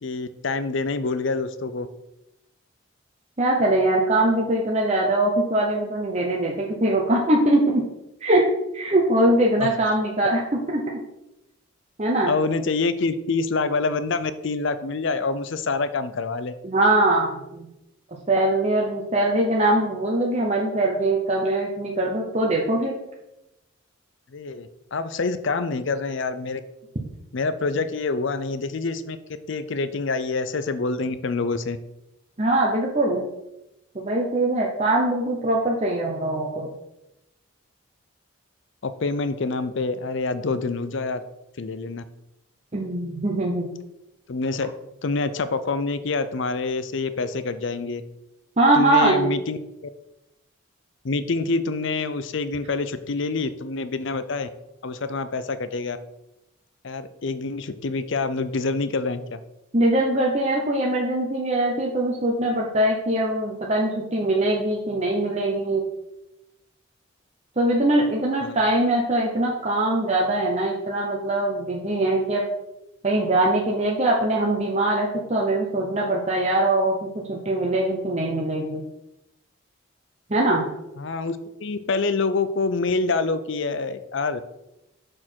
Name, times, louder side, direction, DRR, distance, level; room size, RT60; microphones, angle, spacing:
voice 1, 0.0-1.9 9.6-9.7 12.3-16.5 24.3-26.6 27.3-29.2 29.5-31.8 38.8-41.2 41.6-42.0 44.3-44.7 45.0-48.0 48.8-49.6 51.0-54.5 54.8-56.0 56.8-59.4 68.4-68.6 81.0-84.4, left 3 dB, 60° left, 12 dB, 0.5 m, -26 dB
voice 2, 3.4-7.8 8.2-8.4 8.7-10.8 12.0-12.3 16.6-17.6 18.3-22.9 32.4-33.2 33.9-36.7 42.7-43.7 48.6-49.3 59.7-65.8 67.6-72.4 73.0-78.8 80.3-80.6, right 1 dB, 30° right, -2 dB, 0.8 m, -22 dB
6.6 x 6.2 x 4.5 m, 0.91 s
head